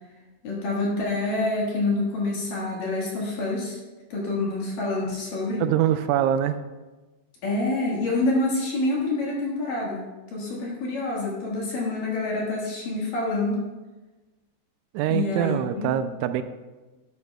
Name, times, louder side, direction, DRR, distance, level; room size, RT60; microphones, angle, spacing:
voice 1, 0.4-3.8 4.1-5.6 7.4-10.0 10.3-13.6 15.1-15.9, left 2 dB, 60° left, -4 dB, 2.7 m, -27 dB
voice 2, 5.6-6.6 14.9-16.4, right 10 dB, 85° right, 10 dB, 2.9 m, -24 dB
12.0 x 12.0 x 2.3 m, 1.2 s
omnidirectional pair, 5.5 m